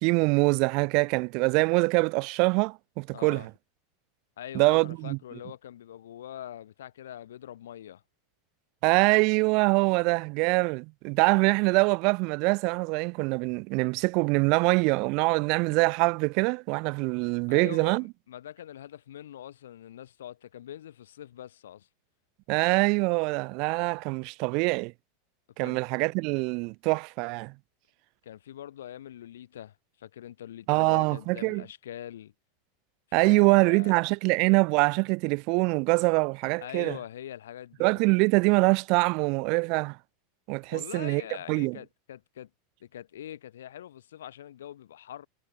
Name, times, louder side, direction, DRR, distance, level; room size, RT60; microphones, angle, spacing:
voice 1, 0.0-3.5 4.5-5.2 8.8-18.0 22.5-24.9 25.6-27.5 30.7-31.6 33.1-37.0 37.8-40.0 40.5-41.2 41.5-41.8, right 30 dB, 50° right, 0.8 m, -24 dB
voice 2, 3.1-3.5 4.4-8.0 17.5-21.9 25.6-25.8 28.2-32.3 33.1-33.9 36.6-37.9 40.7-42.5 42.8-45.3, left 11 dB, 65° left, 3.9 m, -43 dB
figure-of-eight pair, 85°, 0 cm